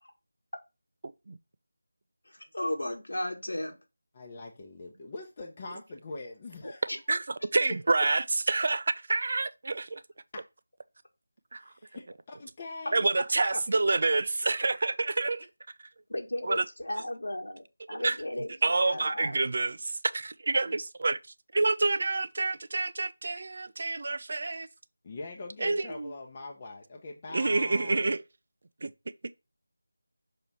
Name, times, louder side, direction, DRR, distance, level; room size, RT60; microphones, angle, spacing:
voice 1, 2.3-3.7 6.9-7.0 16.1-19.4, left 1 dB, 90° left, 1.8 m, -35 dB
voice 2, 4.1-6.9 11.5-13.1 25.0-28.1, left 3 dB, 25° left, 0.9 m, -43 dB
voice 3, 7.5-10.0 11.5-11.6 12.9-15.5 16.4-16.6 17.9-18.2 18.6-21.2 21.5-24.7 25.6-26.1 27.3-28.2 28.8-28.9, right 3 dB, 45° right, 0.5 m, -28 dB
6.0 x 3.0 x 5.5 m
figure-of-eight pair, 170°, 0 cm